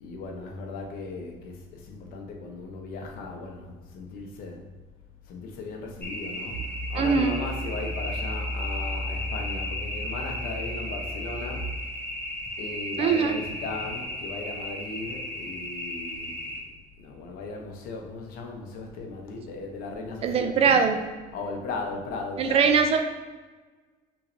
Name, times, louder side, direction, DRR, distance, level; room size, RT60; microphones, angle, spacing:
voice 1, 0.0-4.6 5.3-11.7 12.6-16.5 17.0-20.8 21.3-22.7, left 3 dB, 60° left, 1 dB, 0.8 m, -37 dB
sound 1, 6.0-16.6, left 1 dB, 10° left, 0.7 m, -35 dB
sound 2, 6.5-11.6, equal, 75° right, 0.8 m, -35 dB
voice 2, 6.9-7.4 13.0-13.3 20.2-21.0 22.4-23.0, right 6 dB, 35° right, 6 dB, 0.3 m, -21 dB
5.6 x 3.1 x 2.6 m, 1.3 s
cardioid pair, 160°, 17 cm